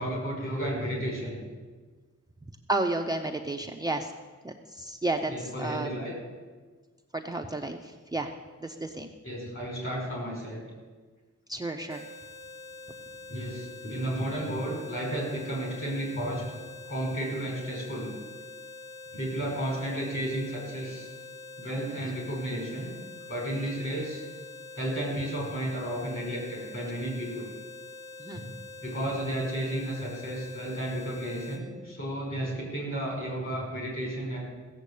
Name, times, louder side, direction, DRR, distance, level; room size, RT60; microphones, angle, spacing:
voice 1, 0.0-1.4 5.3-6.1 9.2-10.6 13.3-16.4 16.9-18.1 19.1-21.1 21.6-22.9 23.3-24.2 24.8-27.5 28.3-28.5 28.8-34.4, right 1 dB, 45° left, -2 dB, 5.3 m, -33 dB
voice 2, 2.7-4.1 4.4-5.9 7.1-8.3 8.6-9.1 11.5-12.1 12.9-13.2 21.9-22.1 28.2-28.4, right 2 dB, 15° right, 2 dB, 0.6 m, -32 dB
sound 1, 11.9-31.6, left 3 dB, 65° left, 1.8 m, -45 dB
16.0 x 7.4 x 8.3 m, 1.4 s
wide cardioid pair, 165°, 30 cm